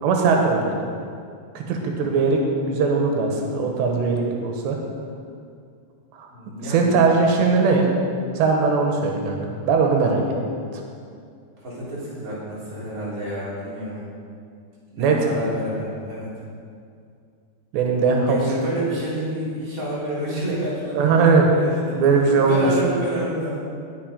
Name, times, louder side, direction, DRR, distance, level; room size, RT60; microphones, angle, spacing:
voice 1, 0.0-0.7 1.6-2.4 2.7-4.8 6.1-6.3 6.7-7.9 8.4-9.4 9.7-10.2 15.0-15.4 17.7-18.5 21.0-21.5 22.0-22.7, right 4 dB, 90° right, 1 dB, 3.4 m, -19 dB
voice 2, 6.3-6.9 11.6-14.0 14.9-16.3 18.2-23.6, right 1 dB, 35° right, -8 dB, 4.2 m, -29 dB
18.5 x 6.7 x 5.1 m, 2.3 s
omnidirectional pair, 4.8 m